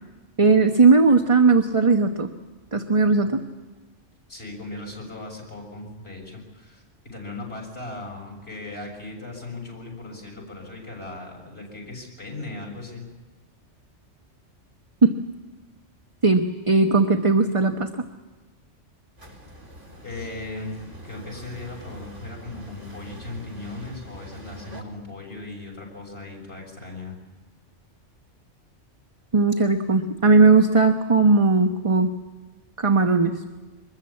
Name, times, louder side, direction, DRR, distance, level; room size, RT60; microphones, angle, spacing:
voice 1, 0.4-2.3 2.7-3.4 15.0-15.1 16.2-17.9 29.3-32.1 32.8-33.3, right 4 dB, 30° right, 5 dB, 1.0 m, -18 dB
voice 2, 4.3-13.1 20.0-20.8 21.0-27.2, left 2 dB, 55° left, 0 dB, 6.8 m, -38 dB
sound 1, 19.2-24.8, right 1 dB, 80° right, 4.7 m, -43 dB
24.5 x 20.5 x 8.7 m, 1.2 s
omnidirectional pair, 1.2 m